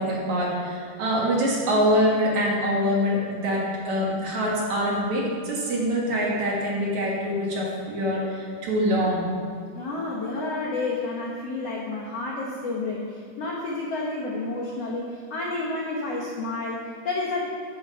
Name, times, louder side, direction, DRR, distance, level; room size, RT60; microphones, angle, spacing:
voice 1, 0.0-9.3, equal, 55° right, -4 dB, 2.7 m, -24 dB
voice 2, 9.7-17.4, left 2 dB, 85° left, -3 dB, 1.3 m, -30 dB
13.0 x 6.4 x 5.5 m, 2.4 s
omnidirectional pair, 4.7 m